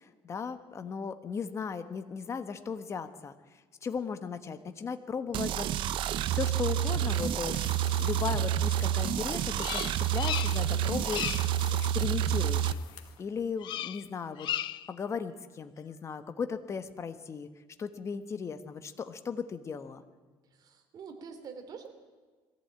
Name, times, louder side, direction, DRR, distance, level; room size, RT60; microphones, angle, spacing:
voice 1, 0.0-7.6 8.0-14.5 14.9-17.5 17.8-20.0, left 6 dB, 30° left, 9 dB, 1.3 m, -37 dB
sound 1, 5.3-12.7, right 10 dB, 65° right, 0.7 m, -29 dB
sound 2, 6.6-13.3, left 10 dB, 75° left, 1.9 m, -49 dB
Bird vocalization bird call bird song, 9.6-10.8 11.0-11.6 13.6-14.1 14.4-14.9, left 12 dB, 55° left, 0.5 m, -35 dB
voice 2, 20.4-21.9, right 6 dB, 45° right, 6 dB, 3.1 m, -45 dB
21.5 x 15.0 x 8.9 m, 1.4 s
cardioid pair, 135°, 9 cm